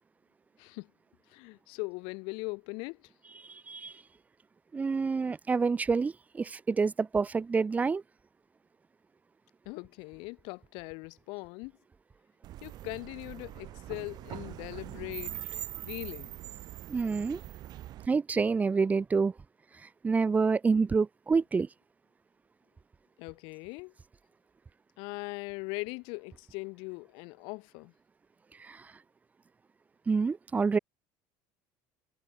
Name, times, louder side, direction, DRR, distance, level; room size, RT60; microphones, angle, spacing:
voice 1, 1.3-3.1 9.7-11.7 12.6-16.4 23.2-23.9 25.0-27.9, left 29 dB, 70° left, 1.9 m, -40 dB
voice 2, 3.4-3.9 4.7-8.0 16.9-17.4 18.1-19.3 20.0-21.7 28.6-28.9 30.1-30.8, right 4 dB, 15° right, 0.7 m, -27 dB
sound 1, 12.4-18.1, right 14 dB, 50° right, 4.8 m, -42 dB
cardioid pair, 125°, 9 cm